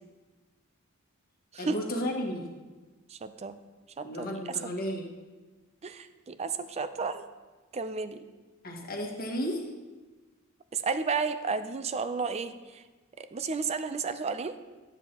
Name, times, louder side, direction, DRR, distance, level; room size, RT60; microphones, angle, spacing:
voice 1, 1.6-2.5 4.0-5.1 8.6-9.6, equal, 45° left, 0 dB, 1.5 m, -33 dB
voice 2, 3.1-3.6 4.0-4.3 4.6-4.7 5.8-7.3 7.7-8.2 10.7-12.8 13.2-14.5, right 4 dB, 30° right, 11 dB, 0.4 m, -32 dB
12.5 x 8.1 x 2.9 m, 1.3 s
head